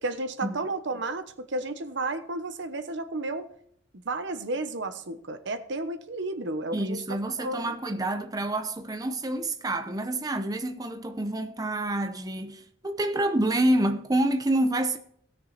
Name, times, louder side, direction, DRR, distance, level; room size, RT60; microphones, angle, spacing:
voice 1, 0.0-3.5 3.9-7.7, right 2 dB, 65° right, 1.0 m, -32 dB
voice 2, 6.7-15.0, right 1 dB, 20° right, 0.7 m, -27 dB
17.0 x 6.6 x 4.2 m
head